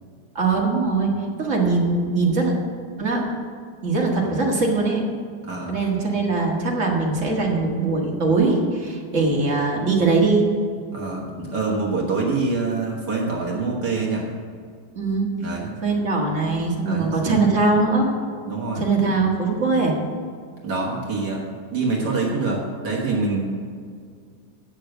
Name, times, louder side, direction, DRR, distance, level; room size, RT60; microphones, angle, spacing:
voice 1, 0.4-1.1 1.4-2.5 3.0-3.2 3.8-5.1 5.7-10.5 15.0-15.3 15.8-18.1 18.8-20.0, right 3 dB, 45° right, -1 dB, 2.1 m, -21 dB
voice 2, 5.4-5.8 10.9-14.2 15.4-15.7 16.8-17.5 18.5-18.8 20.6-21.4 21.7-23.4, right 3 dB, 75° right, -3 dB, 2.0 m, -25 dB
9.3 x 6.6 x 7.8 m, 2.1 s
omnidirectional pair, 1.8 m